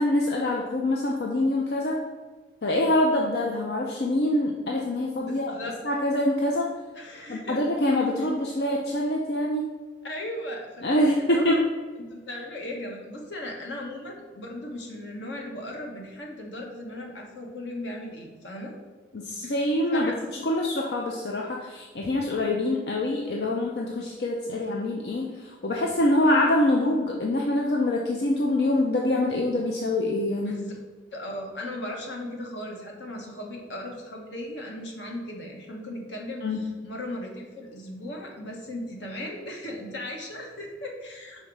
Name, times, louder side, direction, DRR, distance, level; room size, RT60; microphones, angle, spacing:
voice 1, 0.0-2.0 2.6-5.5 5.8-6.7 7.3-9.7 10.8-11.6 19.1-20.1 20.4-30.5 36.4-36.6, left 1 dB, 60° left, -1 dB, 0.6 m, -25 dB
voice 2, 5.2-5.8 6.9-7.6 8.2-8.3 10.0-11.6 12.1-18.7 19.4-19.6 19.9-20.2 30.4-30.8 31.1-41.5, left 1 dB, 80° left, 0 dB, 1.2 m, -37 dB
5.7 x 4.0 x 4.6 m, 1.4 s
head